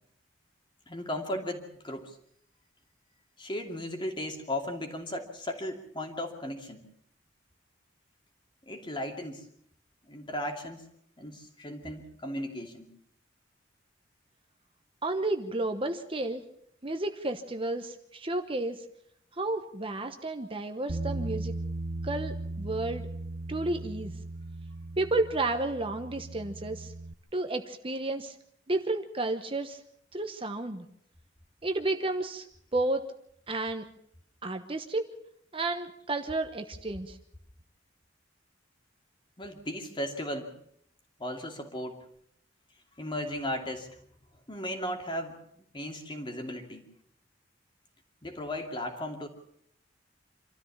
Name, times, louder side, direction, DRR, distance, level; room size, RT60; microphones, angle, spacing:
voice 1, 0.9-2.2 3.4-6.8 8.7-9.4 10.0-10.8 11.2-12.9 39.4-40.5 41.2-42.0 43.0-44.0 44.5-46.8 48.2-49.3, left 1 dB, 25° left, 4 dB, 2.7 m, -36 dB
voice 2, 15.0-16.4 16.8-18.8 19.4-21.5 22.0-23.1 23.5-24.1 25.0-26.9 27.3-28.4 28.7-29.8 30.1-30.9 31.6-32.5 32.7-33.0 33.5-33.9 34.4-35.1 35.5-37.2, right 2 dB, 30° right, 7 dB, 1.1 m, -31 dB
Bass guitar, 20.9-27.1, right 2 dB, 50° right, 0.8 m, -37 dB
26.0 x 13.5 x 7.3 m, 0.69 s
head